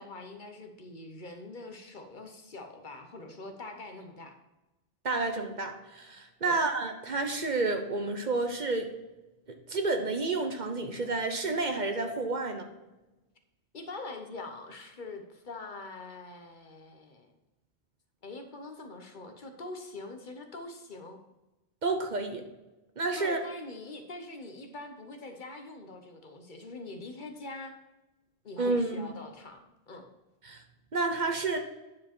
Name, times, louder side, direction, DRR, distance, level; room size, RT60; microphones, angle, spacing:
voice 1, 0.0-4.4 6.4-6.6 13.7-17.3 18.2-21.2 23.2-27.7 28.4-30.1, left 2 dB, 50° left, 5 dB, 1.0 m, -44 dB
voice 2, 5.0-8.9 9.7-12.7 21.8-22.4 23.0-23.4 28.6-29.1 30.4-30.6 30.9-31.6, right 3 dB, 50° right, 5 dB, 1.0 m, -30 dB
9.5 x 5.0 x 4.3 m, 1.0 s
omnidirectional pair, 1.1 m